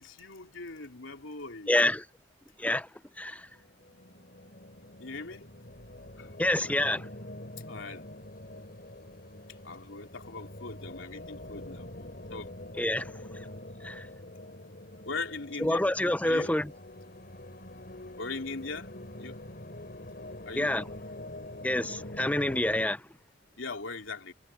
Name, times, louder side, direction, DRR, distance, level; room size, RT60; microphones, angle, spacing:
voice 1, 0.0-1.7 5.0-5.5 6.2-6.3 7.7-8.0 9.6-11.9 12.3-12.5 15.0-15.8 16.2-16.6 18.2-18.9 19.2-19.4 20.5-20.7 23.6-24.3, left 3 dB, 90° left, 3.3 m, -39 dB
voice 2, 1.7-2.0 2.6-2.9 3.2-3.4 6.4-7.0 12.8-13.0 13.8-14.0 15.6-16.7 20.6-20.8 21.6-23.0, left 1 dB, 10° left, 0.6 m, -27 dB
sound 1, 3.4-22.9, left 1 dB, 50° left, 5.0 m, -45 dB
head